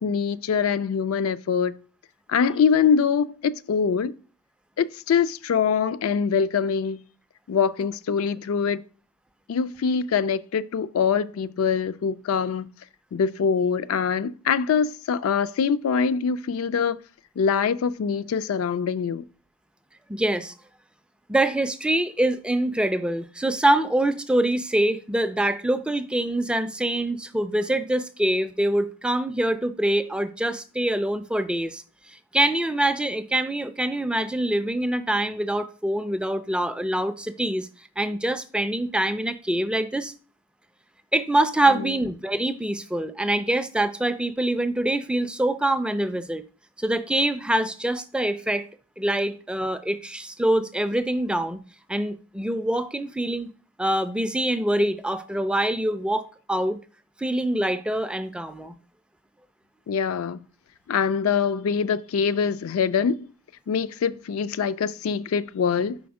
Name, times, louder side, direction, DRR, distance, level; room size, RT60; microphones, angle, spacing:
voice 1, 0.0-1.8 2.3-4.1 4.8-7.0 7.5-8.8 9.5-12.7 13.1-17.0 17.4-19.2 41.7-41.9 59.9-60.4 60.9-63.3 63.7-66.0, left 6 dB, 70° left, 0.4 m, -24 dB
voice 2, 20.1-20.5 21.3-31.8 32.1-37.7 38.0-40.1 41.1-46.4 46.8-48.7 49.0-51.6 51.9-53.5 53.8-56.8 57.2-58.7, right 1 dB, 5° right, 0.3 m, -25 dB
5.1 x 4.2 x 4.7 m
head